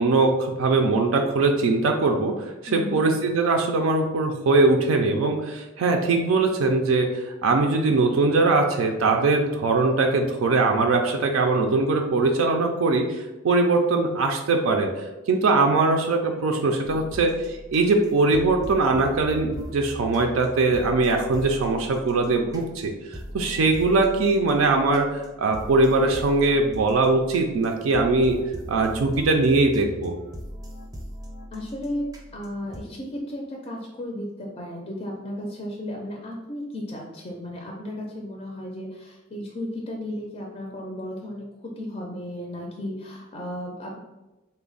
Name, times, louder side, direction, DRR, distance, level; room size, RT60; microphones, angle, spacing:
voice 1, 0.0-28.4 28.7-30.1, right 3 dB, 80° right, 3 dB, 0.4 m, -21 dB
voice 2, 2.7-3.0 31.5-32.0 32.3-44.0, left 1 dB, 30° left, -1 dB, 0.4 m, -34 dB
sound 1, 16.8-32.8, equal, 20° right, 0.5 m, -40 dB
3.3 x 2.1 x 3.8 m, 1.1 s
head